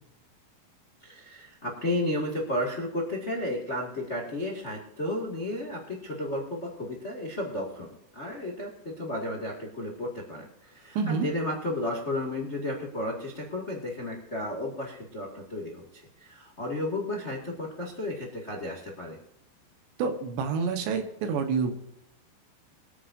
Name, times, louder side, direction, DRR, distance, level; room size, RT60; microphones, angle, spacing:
voice 1, 1.0-19.2, left 1 dB, 80° left, -1 dB, 0.6 m, -33 dB
voice 2, 11.0-11.3 20.0-21.7, right 5 dB, 70° right, 6 dB, 3.3 m, -28 dB
24.5 x 9.4 x 2.7 m, 0.82 s
omnidirectional pair, 5.5 m